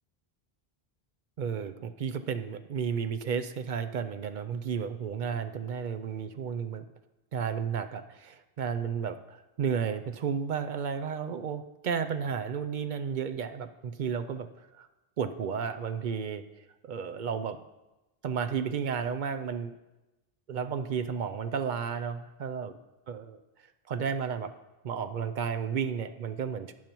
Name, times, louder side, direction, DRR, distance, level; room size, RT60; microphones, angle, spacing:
voice 1, 1.4-6.9 7.3-14.5 14.8-14.9 15.2-16.4 16.8-17.6 18.2-19.7 20.5-22.7 23.1-23.4 23.9-24.5 24.8-26.7, right 6 dB, 60° right, 10 dB, 0.6 m, -32 dB
12.0 x 9.3 x 3.0 m, 1.0 s
omnidirectional pair, 1.0 m